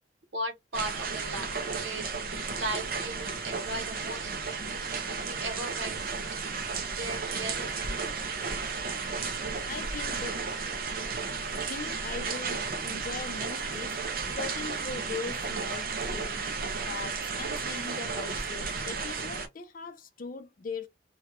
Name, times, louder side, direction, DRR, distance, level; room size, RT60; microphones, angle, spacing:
voice 1, 0.3-4.3 4.7-4.9 5.3-6.1 6.9-7.7, right 2 dB, 85° right, 1.0 m, -37 dB
sound 1, 0.7-19.5, right 4 dB, 50° right, 0.6 m, -33 dB
voice 2, 9.6-10.5 11.6-14.0 14.3-16.5 16.9-20.9, left 4 dB, 45° left, 0.5 m, -40 dB
2.9 x 2.3 x 2.9 m
head